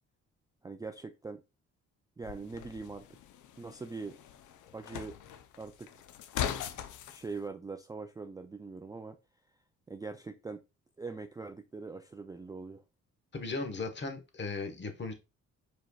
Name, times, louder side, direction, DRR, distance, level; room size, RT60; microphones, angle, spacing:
voice 1, 0.6-1.4 2.2-3.1 3.6-4.2 4.7-5.2 5.6-6.0 7.1-9.2 9.9-10.6 11.0-12.8, right 4 dB, 15° right, 0.3 m, -42 dB
sound 1, 2.2-7.2, left 10 dB, 75° left, 0.6 m, -40 dB
voice 2, 13.3-15.1, left 3 dB, 35° left, 1.2 m, -37 dB
4.9 x 4.5 x 2.3 m
cardioid pair, 90°, 30 cm